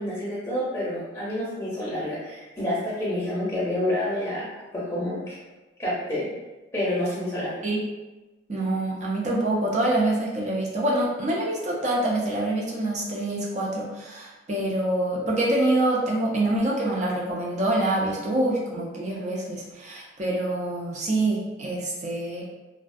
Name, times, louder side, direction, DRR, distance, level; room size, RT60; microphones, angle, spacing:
voice 1, 0.0-4.5 4.7-5.4 5.8-6.3 6.7-7.6, left 1 dB, 15° left, -9 dB, 0.6 m, -28 dB
voice 2, 8.5-22.4, right 1 dB, 40° right, -3 dB, 0.5 m, -26 dB
2.3 x 2.2 x 2.5 m, 1.1 s
head